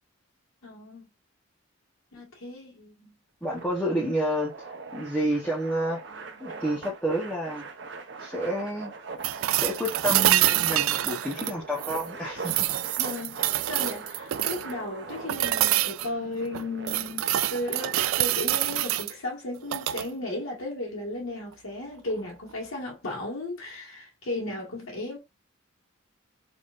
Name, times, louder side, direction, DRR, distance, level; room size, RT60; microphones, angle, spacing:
voice 1, 0.6-1.1 2.1-3.1 6.1-6.6 13.0-13.4 13.6-17.2 17.5-25.2, left 1 dB, 85° left, 1.7 m, -35 dB
voice 2, 3.4-6.0 6.4-7.7 8.2-8.9 9.5-12.6, equal, 5° left, 1.1 m, -29 dB
sound 1, 3.4-18.1, right 4 dB, 55° right, 0.8 m, -41 dB
sound 2, 9.2-12.1 12.4-14.7 15.3-16.1 16.5-19.1 19.6-20.1 22.1-22.2, right 14 dB, 85° right, 0.3 m, -26 dB
4.9 x 3.6 x 2.5 m
head